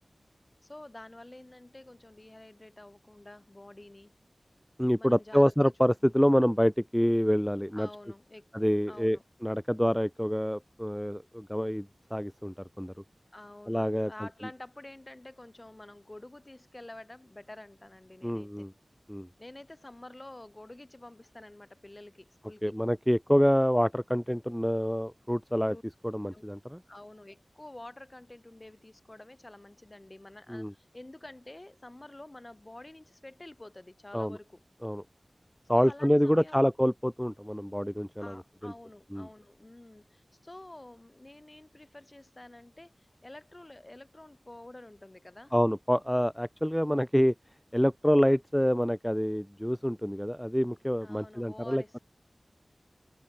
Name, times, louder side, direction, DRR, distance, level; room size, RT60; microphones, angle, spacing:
voice 1, 0.6-4.1 4.9-5.4 7.7-8.5 8.9-9.2 13.3-18.7 19.4-22.7 25.6-25.8 26.3-26.5 26.9-34.6 35.8-36.6 38.2-45.5 51.0-52.0, left 1 dB, 30° left, 6.5 m, -49 dB
voice 2, 4.8-7.9 8.5-12.9 13.7-14.1 18.2-18.7 19.1-19.3 22.6-25.8 26.0-26.8 30.5-30.7 34.1-34.4 34.8-35.0 35.7-38.4 38.6-38.7 39.1-39.3 45.5-47.3 47.7-52.0, equal, 5° left, 1.4 m, -27 dB
wide cardioid pair, 65°, 0 cm